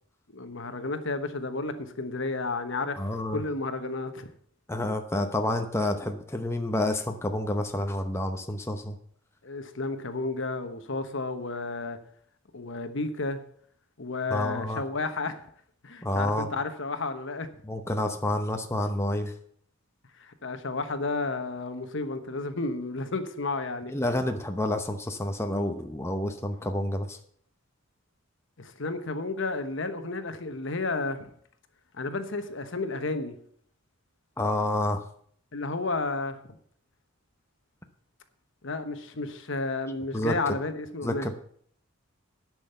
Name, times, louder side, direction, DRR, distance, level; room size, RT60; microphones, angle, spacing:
voice 1, 0.3-4.3 9.4-12.0 12.5-13.4 14.0-15.4 15.8-17.5 20.2-23.9 28.6-31.3 32.0-33.4 35.5-36.4 38.6-41.3, left 3 dB, 60° left, 1.1 m, -32 dB
voice 2, 3.0-3.4 4.7-9.0 14.3-14.8 16.0-16.5 17.7-19.3 23.9-27.2 34.4-35.0 40.1-40.4 41.0-41.4, left 1 dB, 15° left, 0.8 m, -29 dB
10.0 x 6.3 x 8.1 m
head